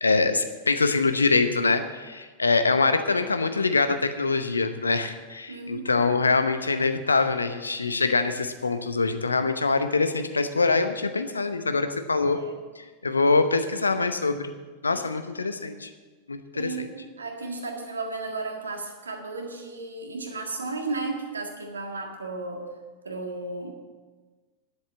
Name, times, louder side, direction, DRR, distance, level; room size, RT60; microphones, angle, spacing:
voice 1, 0.0-12.4 12.8-14.5 14.8-15.9 16.3-16.9, left 3 dB, 75° left, 9 dB, 0.8 m, -24 dB
voice 2, 5.5-6.0 12.3-12.5 14.9-15.0 16.5-22.7 23.1-23.7, right 3 dB, 75° right, 3 dB, 1.8 m, -34 dB
10.5 x 7.8 x 7.9 m, 1.3 s
figure-of-eight pair, 90°, 0 cm